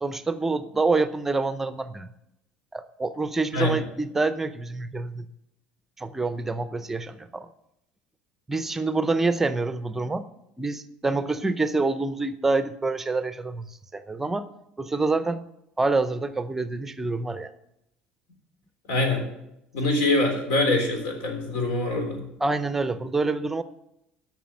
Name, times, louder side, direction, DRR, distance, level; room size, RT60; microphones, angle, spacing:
voice 1, 0.0-2.1 2.7-5.3 6.0-7.5 8.5-10.2 10.6-14.5 14.8-15.4 15.8-17.5 22.4-23.6, right 3 dB, 10° right, 13 dB, 0.6 m, -26 dB
voice 2, 18.9-19.2 19.7-22.2, left 2 dB, 80° left, 3 dB, 3.6 m, -24 dB
11.0 x 6.0 x 7.6 m, 0.82 s
cardioid pair, 150°, 3 cm